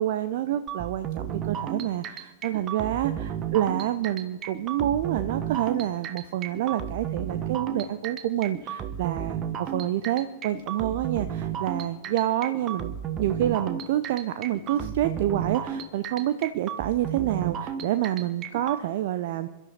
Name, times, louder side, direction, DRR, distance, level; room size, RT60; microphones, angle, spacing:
voice 1, 0.0-12.9 13.2-19.5, right 12 dB, 55° right, 11 dB, 0.6 m, -28 dB
sound 1, 0.7-18.8, right 8 dB, 30° right, 1.3 m, -33 dB
28.0 x 12.5 x 4.1 m, 1.1 s
figure-of-eight pair, 90°, 0 cm